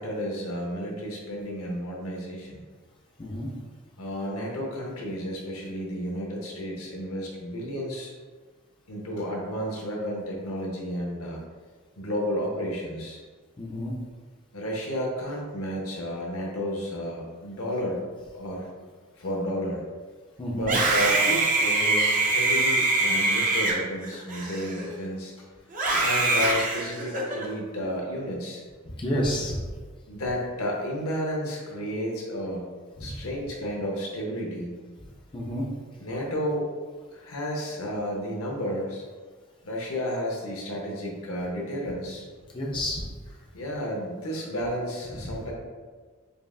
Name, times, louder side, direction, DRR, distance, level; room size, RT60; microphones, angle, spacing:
voice 1, 0.0-2.6 4.0-8.1 8.9-11.4 12.0-13.2 14.5-18.0 18.3-18.7 19.2-19.8 20.5-25.5 26.0-28.6 30.1-32.7 33.0-34.7 36.0-36.7 37.1-39.0 39.6-42.3 43.5-45.5, equal, 85° left, -2 dB, 0.8 m, -32 dB
voice 2, 3.2-3.5 13.6-13.9 20.4-20.7 28.8-29.6 33.0-33.2 35.3-35.6 42.5-43.0 45.2-45.3, equal, 25° left, -3 dB, 0.5 m, -30 dB
Screaming, 20.6-25.1 25.7-27.5, right 2 dB, 40° right, 0.5 m, -24 dB
5.2 x 2.4 x 2.3 m, 1.5 s
head